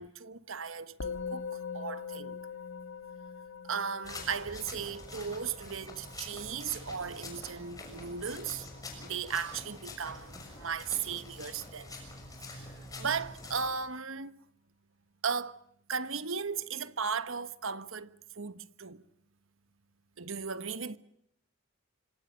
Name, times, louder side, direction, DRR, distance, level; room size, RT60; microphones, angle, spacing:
voice 1, 0.0-2.4 3.6-8.7 9.0-12.0 12.5-14.3 15.2-15.6 15.9-19.0 20.2-21.0, right 6 dB, 65° right, 1.2 m, -36 dB
Musical instrument, 1.0-10.5, left 6 dB, 60° left, 1.7 m, -44 dB
sound 1, 4.0-13.7, left 2 dB, 15° left, 6.6 m, -46 dB
26.5 x 25.5 x 6.4 m
head